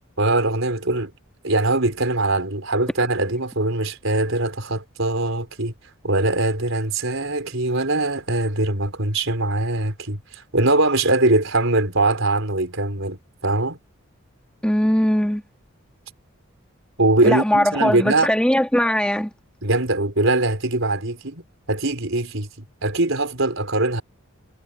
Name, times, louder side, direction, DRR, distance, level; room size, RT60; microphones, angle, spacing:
voice 1, 0.2-1.1 1.4-5.7 6.0-13.8 17.0-18.3 19.6-21.4 21.7-22.5 22.8-24.0, right 2 dB, 65° right, 4.5 m, -22 dB
voice 2, 14.6-15.4 17.2-19.3, equal, 5° left, 1.8 m, -20 dB
head